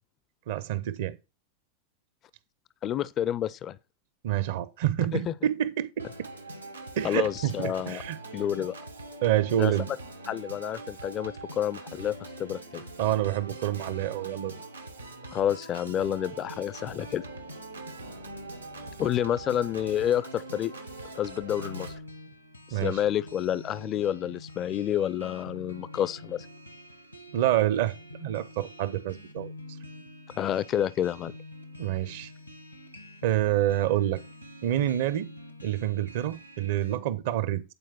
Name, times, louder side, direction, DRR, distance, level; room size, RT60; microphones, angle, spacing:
voice 1, 0.5-1.2 4.2-6.3 7.0-8.2 9.2-9.9 13.0-14.6 22.7-23.0 27.3-27.9 28.2-29.5 31.8-32.3 33.2-34.2 34.6-35.3 35.6-37.6, right 12 dB, 55° right, 0.8 m, -27 dB
voice 2, 2.8-3.8 5.1-5.3 7.0-8.0 8.3-8.7 9.6-9.8 10.3-12.8 15.3-17.3 19.0-20.7 21.2-21.9 22.7-26.5 30.4-31.3, left 10 dB, 30° left, 0.5 m, -29 dB
Organ, 6.0-22.0, right 2 dB, 85° right, 1.2 m, -42 dB
sound 1, 21.6-37.0, left 1 dB, 90° left, 1.3 m, -46 dB
9.5 x 4.6 x 6.0 m
figure-of-eight pair, 90°, 0 cm